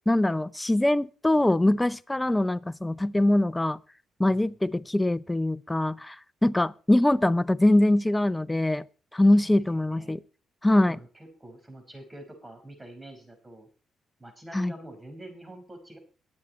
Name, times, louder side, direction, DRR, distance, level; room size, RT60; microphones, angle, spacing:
voice 1, 0.1-3.8 4.2-6.2 6.4-8.8 9.1-10.2 10.6-11.0 14.5-14.7, left 1 dB, 10° left, 0.6 m, -23 dB
voice 2, 4.2-4.6 9.4-10.2 10.7-13.7 14.2-16.0, right 1 dB, 15° right, 5.1 m, -46 dB
21.5 x 7.5 x 4.3 m
cardioid pair, 90°, 0 cm